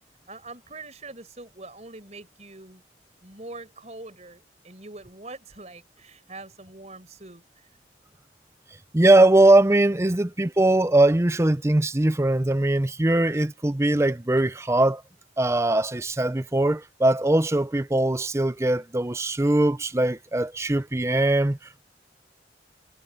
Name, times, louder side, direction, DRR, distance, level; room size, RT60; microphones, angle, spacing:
voice 1, 0.3-2.8 3.2-7.4, right 2 dB, 35° right, 5.4 m, -43 dB
voice 2, 8.9-15.0 15.4-21.6, right 1 dB, 15° right, 0.5 m, -21 dB
head